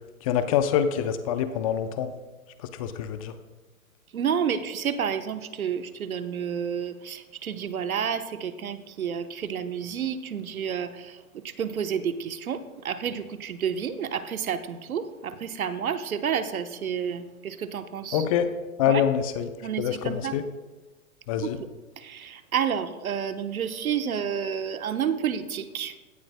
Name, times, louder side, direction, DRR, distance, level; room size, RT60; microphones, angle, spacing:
voice 1, 0.2-2.1 2.8-3.3 18.1-18.5 18.8-19.5 19.8-20.4 21.3-21.6, left 9 dB, 25° left, 10 dB, 0.5 m, -25 dB
voice 2, 4.1-18.2 18.9-19.0 19.6-20.3 21.4-21.7 22.0-25.9, right 8 dB, 75° right, 10 dB, 1.1 m, -30 dB
17.0 x 13.0 x 2.2 m, 1.2 s
hypercardioid pair, 125°, 43 cm